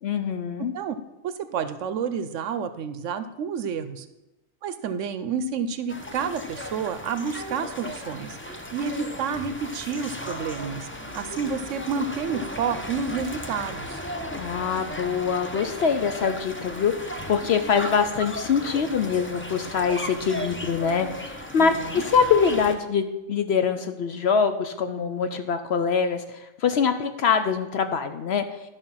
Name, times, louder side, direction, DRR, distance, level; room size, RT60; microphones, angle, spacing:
voice 1, 0.0-0.7 14.4-28.4, left 6 dB, 60° left, 8 dB, 0.8 m, -24 dB
voice 2, 1.2-4.1 4.6-10.9 11.1-14.0 21.6-22.0, right 6 dB, 70° right, 11 dB, 0.9 m, -30 dB
sound 1, 5.9-22.7, equal, 15° left, 0.5 m, -36 dB
12.0 x 5.3 x 5.6 m, 0.97 s
omnidirectional pair, 1.4 m